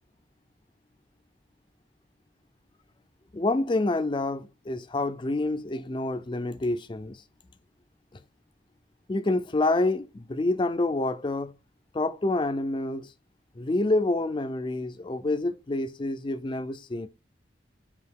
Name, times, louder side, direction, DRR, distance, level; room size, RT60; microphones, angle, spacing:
voice 1, 3.3-7.2 9.1-11.5 11.9-13.1 13.6-17.1, left 2 dB, 25° left, 0.4 m, -27 dB
4.9 x 2.7 x 3.6 m
head